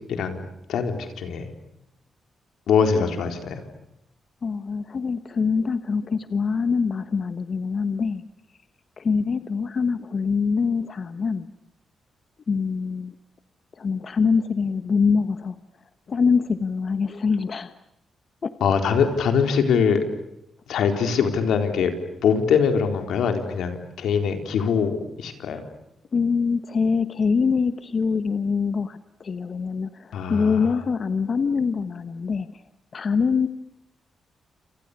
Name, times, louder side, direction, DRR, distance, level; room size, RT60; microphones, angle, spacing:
voice 1, 0.1-0.4 0.7-1.5 2.7-3.6 18.6-20.0 20.7-21.9 22.2-25.6 30.1-30.7, left 6 dB, 85° left, 6 dB, 4.2 m, -23 dB
voice 2, 4.4-8.2 9.0-11.5 12.5-13.1 13.8-15.6 16.1-17.7 18.4-18.5 18.9-19.0 26.1-32.5 32.9-33.5, left 5 dB, 45° left, 11 dB, 1.2 m, -24 dB
28.5 x 28.5 x 6.8 m, 0.86 s
cardioid pair, 105°, 0 cm